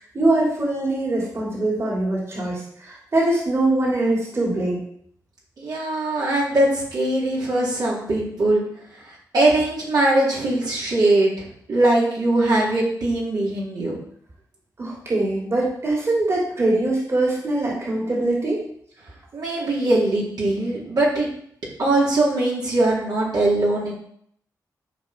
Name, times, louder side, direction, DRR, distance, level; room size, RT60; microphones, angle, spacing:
voice 1, 0.1-4.8 14.8-18.6, right 2 dB, 40° right, -4 dB, 3.4 m, -22 dB
voice 2, 5.6-8.6 9.3-14.0 19.3-21.3 21.8-23.9, right 2 dB, 70° right, -6 dB, 3.9 m, -21 dB
13.0 x 5.3 x 4.6 m, 0.67 s
cardioid pair, 85°, 7 cm